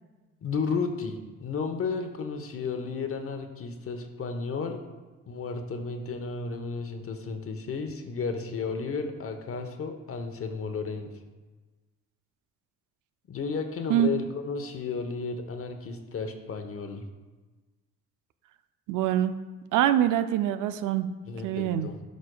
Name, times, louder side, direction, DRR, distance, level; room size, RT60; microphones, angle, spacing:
voice 1, 0.4-4.8 5.3-11.1 13.3-17.1 21.3-22.0, left 4 dB, 50° left, 6 dB, 0.9 m, -33 dB
voice 2, 18.9-19.3 19.7-21.1 21.4-21.9, right 11 dB, 85° right, 11 dB, 0.5 m, -24 dB
11.5 x 5.1 x 2.3 m, 1.3 s
cardioid pair, 90°, 30 cm